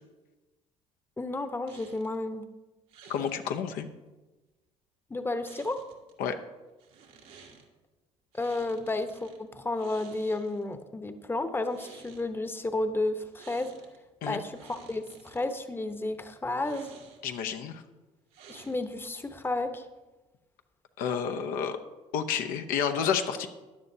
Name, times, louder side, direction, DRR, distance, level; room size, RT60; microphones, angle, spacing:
voice 1, 1.2-2.5 5.1-5.8 8.3-13.7 14.3-16.9 18.5-19.9, left 2 dB, 15° left, 9 dB, 0.9 m, -32 dB
sound 1, 1.7-2.2 2.9-3.4 5.4-6.1 6.8-7.7 8.3-9.4 9.7-10.7 11.5-12.3 13.3-14.0 14.3-15.5 16.5-17.4 18.3-19.0, right 5 dB, 75° right, 1.8 m, -53 dB
voice 2, 3.1-3.9 6.2-6.4 14.2-14.4 17.2-17.8 21.0-21.8 22.1-23.5, left 7 dB, 75° left, 6 dB, 0.8 m, -30 dB
14.5 x 9.9 x 2.8 m, 1.1 s
supercardioid pair, 70°, 15 cm